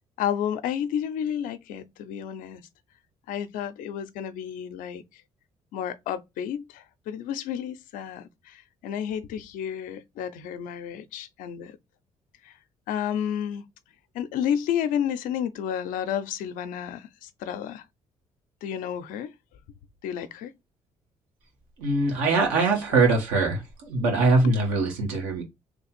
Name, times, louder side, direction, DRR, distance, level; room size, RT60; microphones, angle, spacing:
voice 1, 0.2-2.6 3.3-5.2 5.7-11.8 12.4-12.6 12.9-13.6 14.1-17.8 18.6-19.3 20.0-20.5 24.4-24.5, left 9 dB, 80° left, 0.6 m, -31 dB
voice 2, 21.8-25.4, right 3 dB, 90° right, 1.5 m, -22 dB
3.3 x 2.4 x 4.2 m
supercardioid pair, 65°, 14 cm